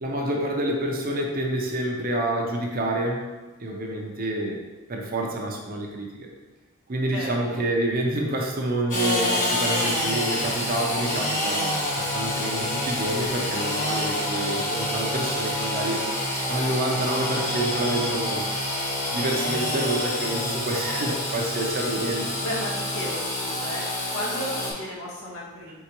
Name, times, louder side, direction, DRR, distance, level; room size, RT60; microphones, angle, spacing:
voice 1, 0.0-3.2 3.6-4.6 4.9-6.1 6.9-16.0 16.5-18.5 19.1-22.3, right 1 dB, 45° right, 1 dB, 0.7 m, -28 dB
voice 2, 7.1-7.6 22.4-25.7, equal, 85° left, -5 dB, 1.3 m, -34 dB
Engine / Sawing, 8.9-24.7, left 1 dB, 40° left, 1.2 m, -27 dB
4.7 x 3.6 x 2.9 m, 1.2 s
head